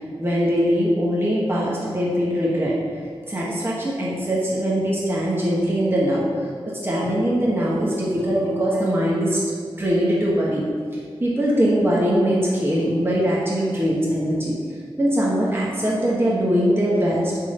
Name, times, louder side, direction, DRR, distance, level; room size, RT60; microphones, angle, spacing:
voice 1, 0.2-3.0 3.3-9.4 9.8-10.7 11.2-14.6 15.0-17.4, equal, 20° right, -6 dB, 1.5 m, -21 dB
7.3 x 3.9 x 5.2 m, 2.1 s
cardioid pair, 55°, 10 cm